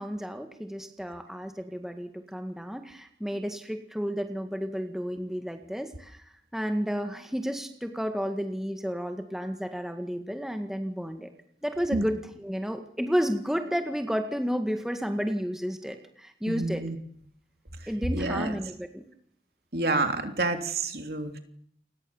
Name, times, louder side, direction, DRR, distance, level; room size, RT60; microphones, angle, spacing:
voice 1, 0.0-11.3 11.6-16.8 17.9-19.0, equal, ahead, 5 dB, 1.9 m, -32 dB
voice 2, 16.5-17.0 18.1-18.5 19.7-21.4, right 2 dB, 60° right, 6 dB, 3.4 m, -28 dB
29.0 x 22.5 x 7.3 m, 0.66 s
head